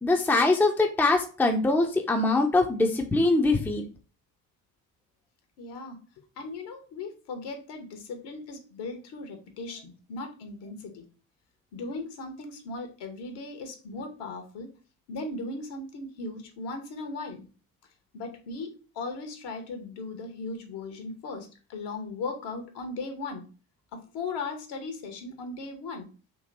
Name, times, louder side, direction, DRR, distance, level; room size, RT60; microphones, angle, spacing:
voice 1, 0.0-3.8, left 2 dB, 5° left, 3 dB, 0.6 m, -23 dB
voice 2, 5.6-6.0 6.4-11.1 11.7-14.7 15.1-17.5 18.1-23.5 23.9-26.1, left 3 dB, 55° left, 5 dB, 1.1 m, -37 dB
3.0 x 2.9 x 3.9 m, 0.36 s
figure-of-eight pair, 45°, 48 cm